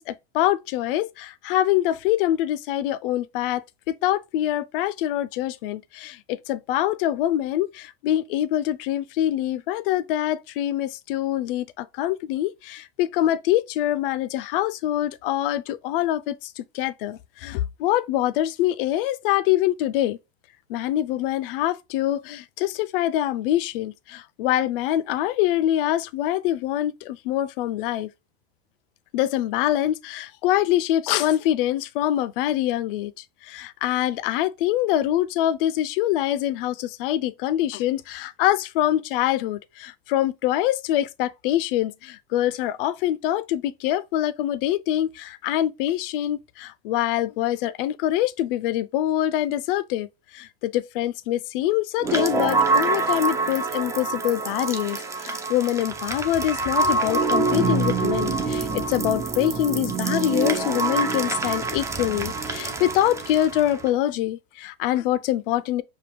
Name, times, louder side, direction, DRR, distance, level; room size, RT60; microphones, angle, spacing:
voice 1, 0.0-20.2 20.7-28.1 29.1-33.1 33.4-50.1 50.3-65.8, left 13 dB, 60° left, 0.4 m, -24 dB
sound 1, 52.0-63.9, right 3 dB, 10° right, 0.4 m, -25 dB
5.2 x 2.2 x 3.1 m
hypercardioid pair, 100°, 32 cm